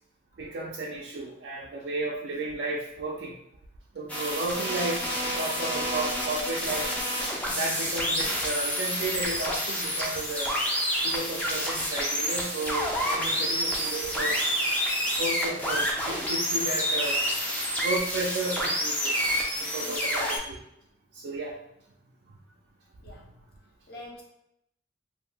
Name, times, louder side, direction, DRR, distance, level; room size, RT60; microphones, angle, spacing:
voice 1, 0.4-3.3 4.0-5.0 5.3-6.9 7.2-10.5 11.0-14.4 15.2-17.2 17.8-19.3 19.6-20.6 21.2-21.6, right 2 dB, 70° right, -3 dB, 0.4 m, -33 dB
sound 1, 4.1-20.4, equal, 10° left, 0.4 m, -28 dB
voice 2, 23.9-24.2, left 2 dB, 55° left, -3 dB, 0.7 m, -44 dB
2.7 x 2.0 x 3.3 m, 0.80 s
head